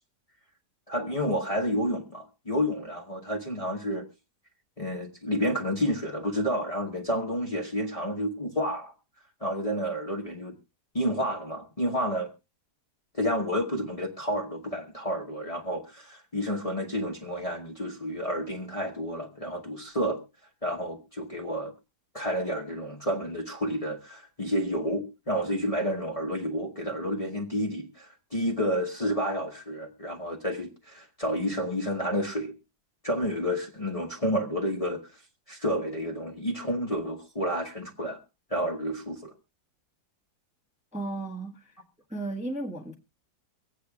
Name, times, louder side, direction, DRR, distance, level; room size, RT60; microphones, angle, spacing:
voice 1, 0.9-4.1 4.8-8.9 9.4-10.5 10.9-12.3 13.1-20.2 20.6-21.7 22.1-32.5 33.0-35.1 35.5-38.2 38.5-39.3, equal, 25° left, 1.1 m, -30 dB
voice 2, 40.9-41.7 42.1-42.9, right 2 dB, 5° right, 1.2 m, -34 dB
24.5 x 8.4 x 2.3 m
omnidirectional pair, 1.7 m